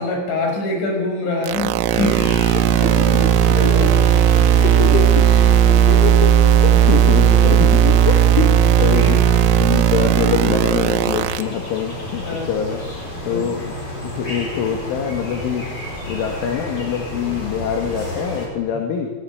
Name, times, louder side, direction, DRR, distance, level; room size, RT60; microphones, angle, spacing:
voice 1, 0.0-2.3 2.7-3.9 4.6-5.0 5.9-6.0 8.4-8.5 12.2-12.5 13.2-13.5, left 2 dB, 65° left, 3 dB, 8.2 m, -25 dB
sound 1, 1.5-11.4, right 9 dB, 80° right, 3.3 m, -15 dB
sound 2, 1.9-18.5, left 1 dB, 30° left, 6.8 m, -31 dB
voice 2, 4.5-5.1 5.7-6.3 6.6-12.8 13.2-13.8 14.0-15.7 16.0-19.1, left 7 dB, 80° left, 3 dB, 4.7 m, -24 dB
25.0 x 22.5 x 9.6 m, 1.4 s
omnidirectional pair, 5.6 m